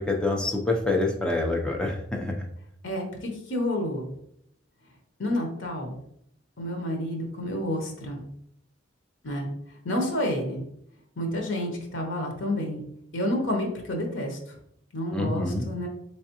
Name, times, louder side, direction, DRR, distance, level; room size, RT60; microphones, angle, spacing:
voice 1, 0.0-2.5 15.1-15.6, left 2 dB, 5° left, 0 dB, 0.5 m, -26 dB
voice 2, 2.8-4.1 5.2-5.9 6.6-8.2 9.2-9.5 9.8-10.6 11.2-12.8 13.1-14.4 14.9-15.9, left 1 dB, 90° left, 2 dB, 0.9 m, -29 dB
3.6 x 3.2 x 2.9 m, 0.72 s
head